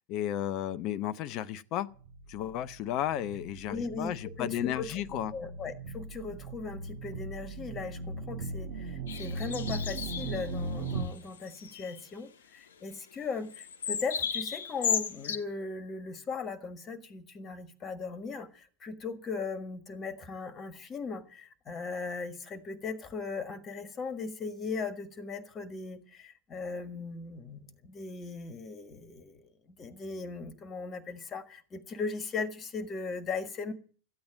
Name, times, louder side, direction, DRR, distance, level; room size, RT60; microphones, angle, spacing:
voice 1, 0.0-1.9 2.3-5.3, left 12 dB, 40° left, 0.7 m, -33 dB
sound 1, 2.0-11.1, right 3 dB, 65° right, 3.3 m, -39 dB
voice 2, 3.7-29.5 29.8-33.7, left 4 dB, 25° left, 1.6 m, -38 dB
sound 2, 9.1-10.5 10.9-11.0 11.3-12.0 13.5-15.4, left 7 dB, 60° left, 1.0 m, -34 dB
14.0 x 8.7 x 9.3 m
figure-of-eight pair, 90°, 0 cm